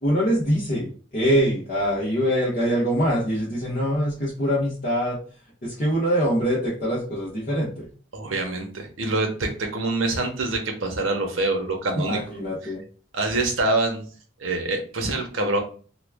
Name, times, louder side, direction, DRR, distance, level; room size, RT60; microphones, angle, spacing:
voice 1, 0.0-5.2 5.6-7.9 12.0-12.8, equal, 40° left, -8 dB, 1.0 m, -24 dB
voice 2, 8.1-12.2 13.1-14.0 14.4-15.6, right 2 dB, 75° right, 3 dB, 0.8 m, -25 dB
3.0 x 2.3 x 3.4 m, 0.40 s
head